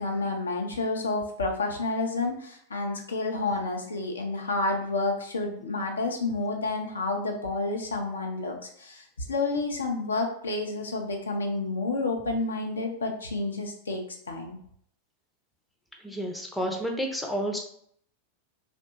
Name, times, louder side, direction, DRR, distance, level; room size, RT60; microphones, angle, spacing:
voice 1, 0.0-14.6, left 3 dB, 70° left, 2 dB, 0.5 m, -30 dB
voice 2, 16.0-17.6, equal, 5° left, 1 dB, 0.4 m, -30 dB
2.7 x 2.1 x 2.7 m, 0.65 s
figure-of-eight pair, 90°, 0 cm